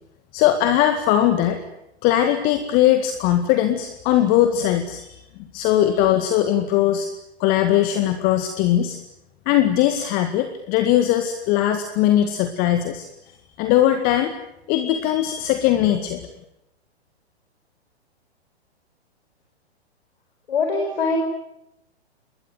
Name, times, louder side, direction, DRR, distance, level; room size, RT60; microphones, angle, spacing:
voice 1, 0.3-1.6 2.0-5.2 5.5-7.1 7.4-9.0 9.5-13.1 13.6-14.4 14.7-16.3, left 12 dB, 25° left, 8 dB, 1.9 m, -20 dB
voice 2, 20.5-21.2, left 4 dB, 55° left, 3 dB, 5.1 m, -22 dB
28.5 x 21.5 x 7.9 m, 0.85 s
figure-of-eight pair, 115°, 33 cm